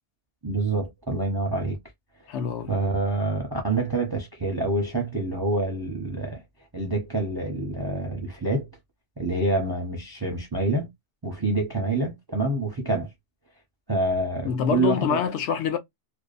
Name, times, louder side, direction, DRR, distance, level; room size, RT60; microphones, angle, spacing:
voice 1, 0.4-1.8 2.7-6.4 6.7-8.7 9.2-10.9 11.2-13.1 13.9-15.2, right 2 dB, 25° right, 0.5 m, -27 dB
voice 2, 2.3-2.7 14.4-15.8, left 7 dB, 70° left, 0.9 m, -25 dB
2.7 x 2.1 x 2.4 m
omnidirectional pair, 1.3 m